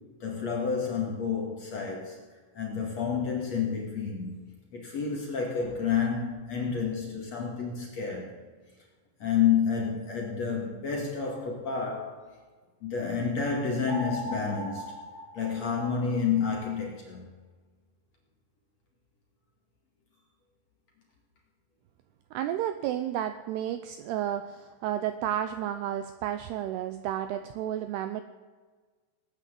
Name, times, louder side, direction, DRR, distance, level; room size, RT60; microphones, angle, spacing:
voice 1, 0.2-2.2 2.5-4.4 4.7-8.3 9.2-12.2 12.8-14.9 15.3-17.3, left 6 dB, 45° left, 0 dB, 2.5 m, -29 dB
sound 1, 13.9-16.3, equal, 55° right, 3.9 m, -39 dB
voice 2, 22.3-28.2, right 11 dB, 85° right, 9 dB, 2.3 m, -32 dB
20.0 x 9.2 x 7.6 m, 1.4 s
omnidirectional pair, 5.4 m